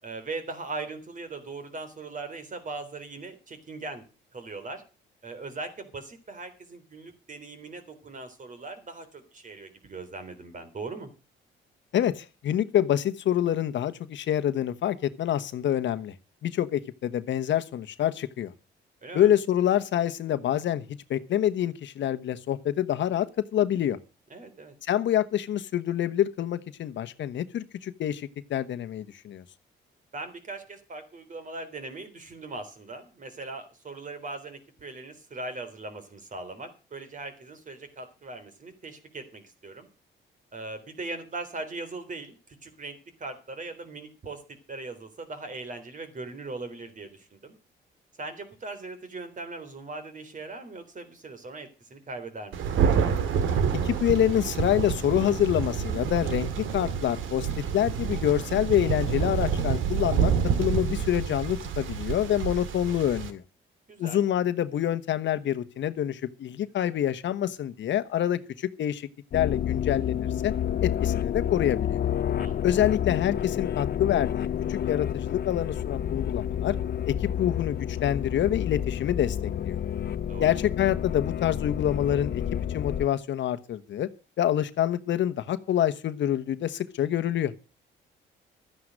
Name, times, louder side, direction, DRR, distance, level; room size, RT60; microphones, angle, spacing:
voice 1, 0.0-4.0 4.3-4.8 5.2-11.1 19.0-19.3 24.3-24.7 30.1-39.9 40.5-44.4 44.7-47.6 48.2-52.7 63.9-64.2 72.4-72.6 80.3-80.6, right 3 dB, 40° right, 3.8 m, -40 dB
voice 2, 11.9-16.1 16.4-18.5 19.1-20.8 21.1-23.3 23.5-24.0 24.8-29.4 53.7-57.5 57.7-60.3 60.6-63.4 64.0-70.5 70.8-72.0 72.6-76.7 77.1-79.8 80.4-82.4 82.7-84.1 84.4-87.5, left 11 dB, 70° left, 1.2 m, -26 dB
Thunder, 52.5-63.3, right 7 dB, 80° right, 2.0 m, -28 dB
sound 1, 69.3-83.1, left 9 dB, 50° left, 0.7 m, -29 dB
13.0 x 9.7 x 6.5 m
cardioid pair, 90°, 20 cm